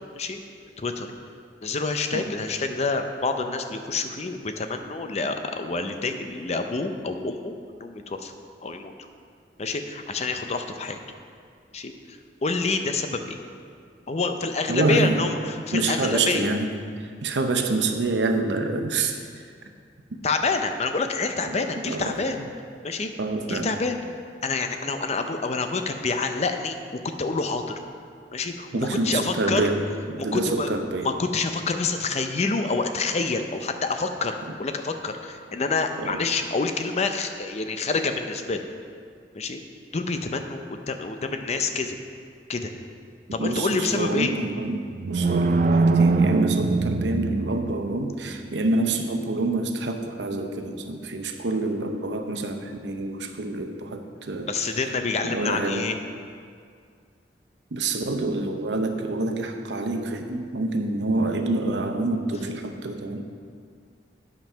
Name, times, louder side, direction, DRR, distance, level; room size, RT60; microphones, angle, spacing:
voice 1, 0.8-1.1 1.6-8.3 8.6-8.9 9.6-11.0 11.7-11.9 12.4-13.4 14.1-16.5 20.2-22.4 22.8-23.1 23.5-24.0 24.4-27.8 28.3-29.7 30.2-30.7 31.0-38.6 39.3-39.6 39.9-42.0 42.5-42.7 43.3-44.3 54.5-56.0, left 3 dB, 40° left, 6 dB, 0.5 m, -27 dB
voice 2, 14.7-15.2 15.7-16.7 17.0-19.2 21.4-21.5 21.8-22.2 23.2-23.7 28.7-31.1 36.0-36.1 43.4-54.5 55.2-55.9 57.7-63.2, right 2 dB, 85° right, 5 dB, 0.7 m, -27 dB
sound 1, 44.7-48.0, right 3 dB, 50° right, 0.3 m, -22 dB
8.9 x 5.3 x 5.7 m, 2.2 s
head